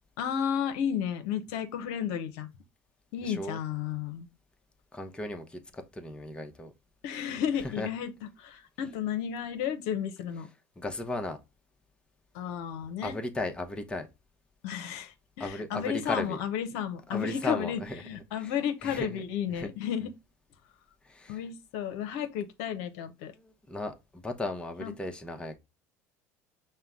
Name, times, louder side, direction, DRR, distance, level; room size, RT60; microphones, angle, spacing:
voice 1, 0.2-2.5 3.1-4.3 7.0-8.1 8.4-10.5 12.3-13.2 14.6-20.1 21.3-23.3 24.8-24.9, left 8 dB, 75° left, 0.7 m, -33 dB
voice 2, 3.2-3.6 4.9-6.7 7.6-7.9 10.8-11.4 13.0-14.1 15.4-16.4 17.1-18.0 18.4-18.5 18.8-19.2 19.5-19.7 21.0-21.4 23.3-25.5, left 2 dB, 10° left, 0.9 m, -36 dB
5.6 x 2.1 x 3.6 m
hypercardioid pair, 80°, 8 cm